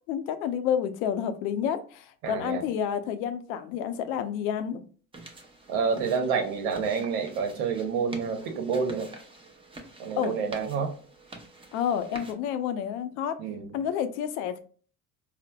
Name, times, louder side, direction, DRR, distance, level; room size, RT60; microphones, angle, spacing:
voice 1, 0.1-4.8 10.2-10.4 11.7-13.4 13.7-14.6, left 8 dB, 85° left, 10 dB, 0.6 m, -29 dB
voice 2, 2.2-2.6 5.7-9.1 10.0-10.9 13.4-13.7, right 5 dB, 75° right, 4 dB, 0.9 m, -28 dB
sound 1, 5.1-12.3, right 2 dB, 15° right, 0.6 m, -47 dB
4.1 x 2.1 x 2.2 m, 0.42 s
supercardioid pair, 90°, 42 cm